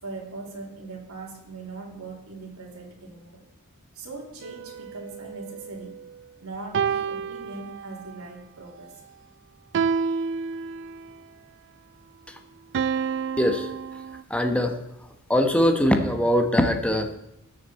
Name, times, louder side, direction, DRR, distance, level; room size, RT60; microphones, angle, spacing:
voice 1, 0.0-3.4 3.9-6.0 6.4-9.0, right 3 dB, 75° right, -2 dB, 3.2 m, -40 dB
sound 1, 4.4-6.2 6.7-8.2 9.7-11.2 12.7-14.2, right 6 dB, 55° right, 0.3 m, -29 dB
voice 2, 13.4-13.7 14.3-14.8 15.3-17.2, equal, 5° left, 5 dB, 1.1 m, -22 dB
20.0 x 6.8 x 4.3 m, 0.82 s
head